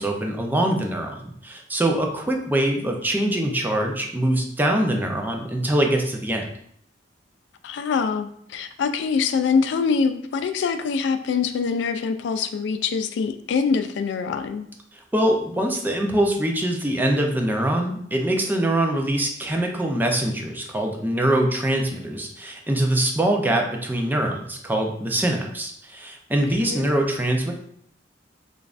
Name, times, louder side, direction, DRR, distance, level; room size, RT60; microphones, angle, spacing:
voice 1, 0.0-6.5 15.1-27.5, right 1 dB, 10° right, 2 dB, 0.4 m, -23 dB
voice 2, 7.6-14.7 26.6-26.9, left 5 dB, 70° left, 9 dB, 0.3 m, -24 dB
5.2 x 2.4 x 2.4 m, 0.66 s
head